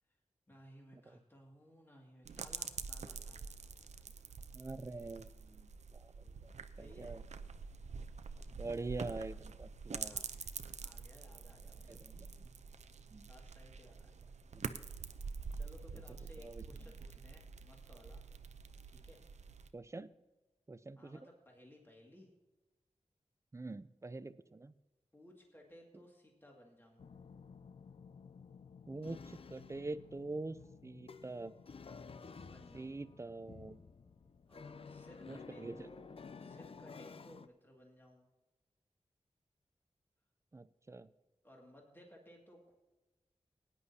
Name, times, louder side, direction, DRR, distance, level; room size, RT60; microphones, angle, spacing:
voice 1, 0.5-4.5 6.7-7.2 10.0-12.3 13.2-14.1 15.5-18.3 18.9-19.2 21.0-22.3 25.1-27.1 32.5-33.0 34.5-36.1 36.4-38.3 41.4-42.8, equal, 20° left, -1 dB, 2.2 m, -60 dB
sound 1, 2.2-19.7, right 5 dB, 85° right, 0.6 m, -47 dB
voice 2, 4.5-7.2 8.5-10.2 11.9-12.5 13.1-13.3 14.5-14.7 16.4-16.6 19.7-20.1 20.7-21.2 23.5-24.7 28.9-30.6 30.8-31.6 32.7-33.8 35.3-35.9 40.5-41.1, right 3 dB, 25° right, 15 dB, 0.4 m, -45 dB
sound 2, 27.0-37.5, left 5 dB, 55° left, 0.5 m, -53 dB
19.0 x 9.8 x 2.8 m, 1.1 s
wide cardioid pair, 105°, 12 cm